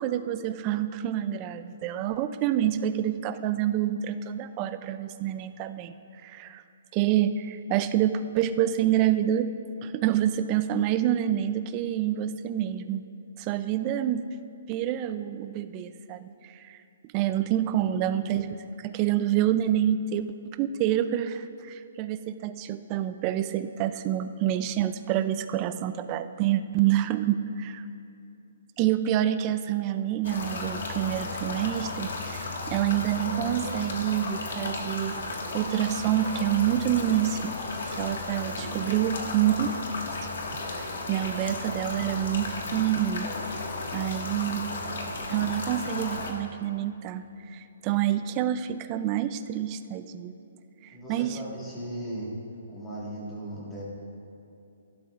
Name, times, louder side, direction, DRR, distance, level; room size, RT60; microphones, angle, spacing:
voice 1, 0.0-5.9 6.2-6.6 6.9-9.5 9.8-13.1 13.4-14.2 14.7-16.8 17.1-27.8 28.8-35.2 35.5-37.5 37.9-39.7 40.7-43.3 43.9-44.7 45.3-47.2 47.5-50.3 51.1-51.4, right 11 dB, 20° right, 11 dB, 0.3 m, -27 dB
sound 1, 30.2-46.3, left 3 dB, 60° left, 1.6 m, -34 dB
voice 2, 38.4-38.8 50.9-52.3 52.7-53.8, right 1 dB, 10° left, -6 dB, 1.6 m, -37 dB
17.0 x 12.0 x 2.4 m, 2.6 s
hypercardioid pair, 175°, 0 cm